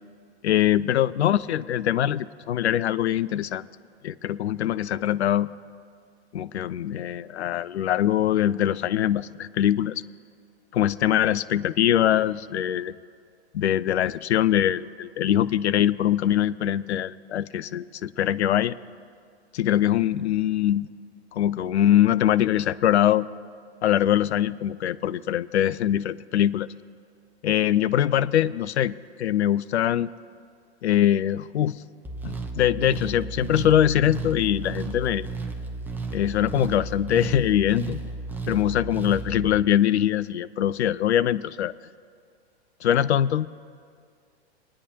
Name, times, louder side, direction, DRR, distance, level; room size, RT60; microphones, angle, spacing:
voice 1, 0.4-3.6 4.0-5.5 6.3-9.9 10.7-12.9 13.5-18.8 19.5-20.9 21.3-23.3 23.8-26.7 27.4-30.1 30.8-31.8 32.2-35.3 36.1-38.0 38.5-41.7 42.8-43.5, left 11 dB, 75° left, 17 dB, 0.5 m, -23 dB
sound 1, 32.0-39.6, right 3 dB, 5° right, 0.9 m, -33 dB
22.0 x 9.8 x 2.9 m, 2.2 s
figure-of-eight pair, 110°, 34 cm